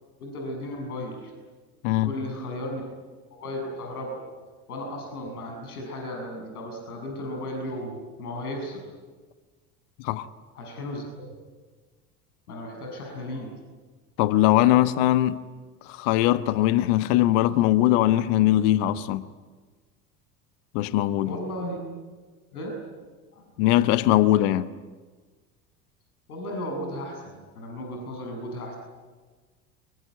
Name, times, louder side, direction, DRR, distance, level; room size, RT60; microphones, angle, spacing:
voice 1, 0.2-1.3 1.9-2.8 3.4-4.2 4.7-8.9 10.6-11.3 12.5-13.6 21.2-21.8 22.5-22.8 23.3-23.4 26.3-28.8, left 1 dB, 70° left, 7.2 m, -35 dB
voice 2, 14.2-15.4 15.9-19.3 20.7-21.4 23.6-24.7, left 14 dB, 50° left, 1.2 m, -21 dB
25.0 x 23.5 x 9.5 m
figure-of-eight pair, 70°, 47 cm